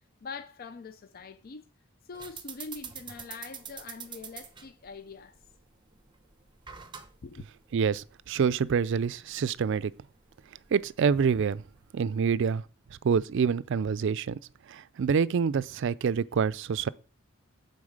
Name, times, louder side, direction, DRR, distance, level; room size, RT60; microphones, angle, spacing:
voice 1, 0.2-1.6 2.0-5.4 7.2-7.5, left 4 dB, 45° left, 0.5 m, -43 dB
sound 1, 2.1-12.2, right 7 dB, 25° right, 0.8 m, -47 dB
voice 2, 7.7-9.9 10.7-11.6 11.9-12.6 13.0-14.4 14.7-16.9, right 6 dB, 65° right, 0.4 m, -26 dB
8.7 x 4.1 x 6.4 m
head